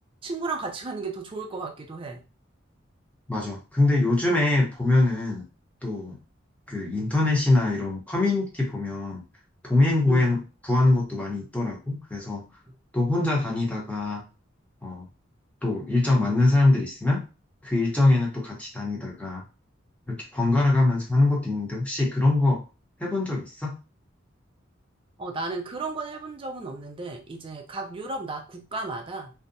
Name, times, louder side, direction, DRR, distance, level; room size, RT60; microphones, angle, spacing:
voice 1, 0.2-2.2 10.1-10.3 25.2-29.3, right 3 dB, 25° right, 3 dB, 0.4 m, -34 dB
voice 2, 3.3-5.4 5.8-6.2 6.7-9.2 9.6-12.4 12.9-14.2 14.8-15.0 15.6-17.2 17.6-19.4 20.1-22.6 23.0-23.7, left 2 dB, 5° left, -3 dB, 0.7 m, -23 dB
2.6 x 2.1 x 2.5 m, 0.32 s
head